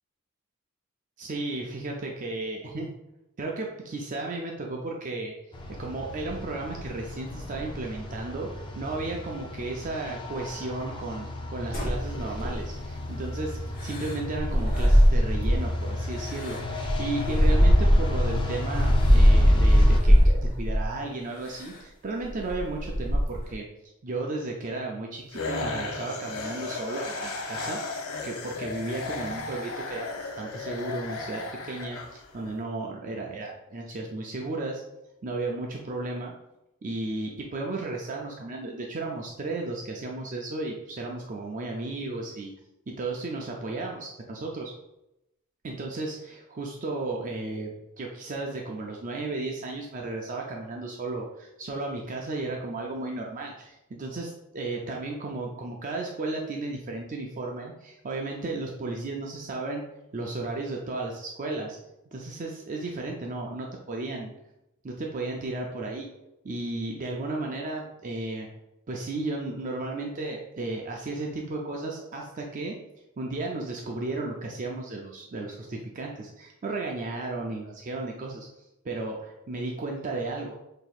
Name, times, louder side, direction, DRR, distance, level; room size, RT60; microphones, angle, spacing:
voice 1, 1.2-2.9 3.4-5.3 5.8-23.7 24.0-34.8 35.2-36.3 36.8-42.5 42.9-44.7 45.6-59.8 60.1-61.8 62.1-64.3 64.8-66.1 66.4-68.5 68.9-72.8 73.2-78.5 78.8-80.5, right 2 dB, 40° right, 0 dB, 0.4 m, -34 dB
sound 1, 5.5-20.0, equal, 20° left, 0.5 m, -27 dB
sound 2, 11.7-12.9 13.8-15.7 16.1-18.4 19.0-19.2 19.8-20.9 21.5-21.8 22.2-23.5, equal, 45° left, 0.8 m, -23 dB
sound 3, 25.3-32.5, left 3 dB, 85° left, 0.7 m, -35 dB
6.0 x 2.7 x 2.3 m, 0.88 s
head